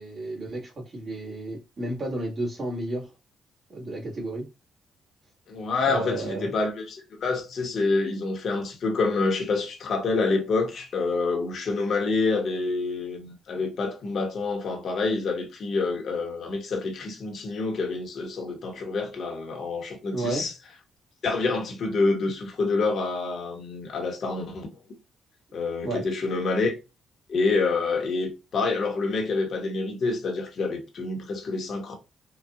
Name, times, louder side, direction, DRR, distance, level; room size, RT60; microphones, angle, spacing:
voice 1, 0.0-3.1 3.7-4.5 5.8-6.5 20.1-20.5 25.8-26.0, right 1 dB, 40° right, 1.5 m, -32 dB
voice 2, 5.5-20.5 21.2-24.7 25.5-26.8 27.3-32.0, left 3 dB, 60° left, 1.1 m, -27 dB
4.0 x 2.4 x 2.4 m
cardioid pair, 90°, 0 cm